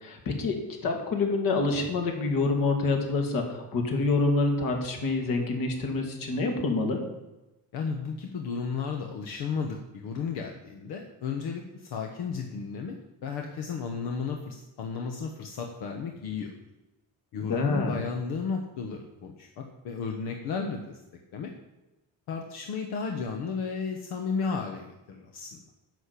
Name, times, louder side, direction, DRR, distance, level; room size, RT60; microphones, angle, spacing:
voice 1, 0.0-7.0 17.5-18.0, left 3 dB, 60° left, 3 dB, 2.6 m, -27 dB
voice 2, 7.7-13.0 13.2-16.5 17.3-21.0 21.3-21.5 22.3-25.6, left 5 dB, 85° left, 3 dB, 1.4 m, -33 dB
11.0 x 6.6 x 8.4 m, 1.0 s
cardioid pair, 160°, 37 cm